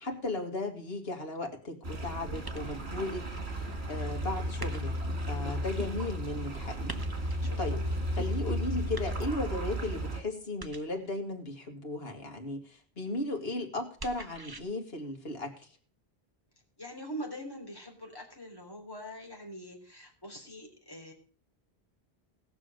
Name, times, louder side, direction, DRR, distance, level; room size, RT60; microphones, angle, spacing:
voice 1, 0.0-7.0 7.3-7.8 8.1-15.7, left 2 dB, 70° left, 4 dB, 2.3 m, -36 dB
sound 1, 1.8-10.2, equal, 85° right, 2.7 m, -34 dB
sound 2, 2.4-3.0 4.6-5.2 6.9-7.5 8.9-9.6 10.6-11.1 14.0-14.6, right 3 dB, 20° right, 1.0 m, -44 dB
voice 2, 7.4-7.9 16.8-21.1, equal, 20° left, 0 dB, 3.5 m, -43 dB
18.0 x 6.3 x 6.5 m, 0.42 s
omnidirectional pair, 1.1 m